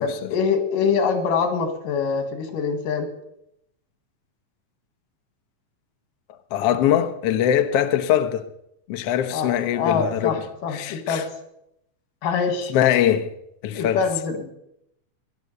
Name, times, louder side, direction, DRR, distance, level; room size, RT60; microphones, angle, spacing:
voice 1, 0.0-3.1 9.3-11.3 12.2-12.7 13.7-14.5, left 5 dB, 80° left, 3.5 m, -24 dB
voice 2, 6.5-8.5 8.9-10.4 10.7-11.2 12.7-13.3 13.6-14.0, left 10 dB, 65° left, 1.6 m, -22 dB
17.5 x 11.5 x 6.7 m
omnidirectional pair, 3.7 m